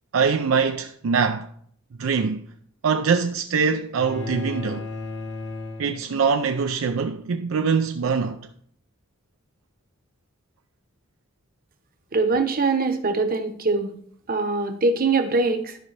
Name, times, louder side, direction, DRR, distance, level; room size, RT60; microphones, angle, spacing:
voice 1, 0.1-1.5 2.0-2.5 2.8-4.9 5.8-8.5, right 5 dB, 70° right, 0.4 m, -23 dB
sound 1, 4.0-6.5, left 3 dB, 55° left, 1.3 m, -34 dB
voice 2, 12.1-13.9 14.3-15.8, right 3 dB, 45° right, 1.0 m, -22 dB
12.5 x 5.3 x 3.3 m
head